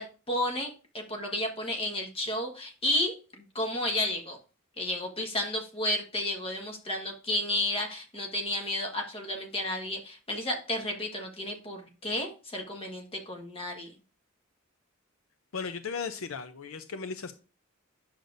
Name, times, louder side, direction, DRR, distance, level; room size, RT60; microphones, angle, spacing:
voice 1, 0.0-4.4 4.8-13.9, left 1 dB, 30° left, 2 dB, 1.5 m, -32 dB
voice 2, 15.5-17.3, left 5 dB, 70° left, 9 dB, 0.5 m, -36 dB
9.3 x 6.5 x 2.6 m, 0.35 s
head